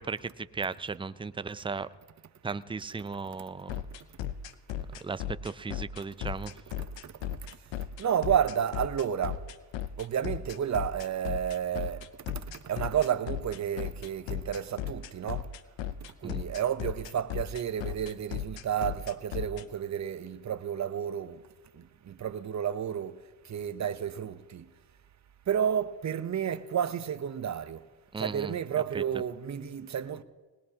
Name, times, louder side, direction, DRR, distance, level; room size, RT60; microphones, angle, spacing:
voice 1, 0.0-1.9 2.4-3.8 5.0-6.5 16.2-16.5 28.1-28.5 28.9-29.0, right 4 dB, 10° right, 0.4 m, -36 dB
sound 1, 3.7-19.6, left 11 dB, 90° left, 0.7 m, -35 dB
voice 2, 7.0-7.4 8.0-9.4 10.0-12.1 12.3-15.5 16.2-21.4 21.7-23.2 23.4-24.7 25.5-27.8 28.2-30.2, right 9 dB, 40° right, 0.8 m, -31 dB
20.5 x 19.5 x 2.8 m
cardioid pair, 70°, 43 cm